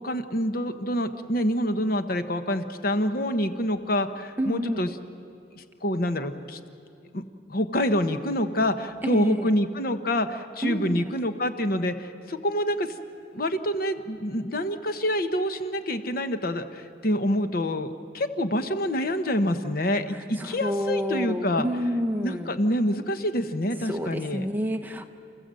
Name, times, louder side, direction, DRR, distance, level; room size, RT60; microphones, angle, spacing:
voice 1, 0.0-4.9 5.6-6.6 7.1-7.2 7.5-12.9 13.3-21.7 22.2-24.5, equal, 50° left, 9 dB, 1.0 m, -27 dB
voice 2, 4.4-4.9 9.0-9.5 10.6-11.2 20.1-22.6 23.8-25.1, equal, 10° right, 6 dB, 0.8 m, -29 dB
30.0 x 15.0 x 7.6 m, 2.5 s
head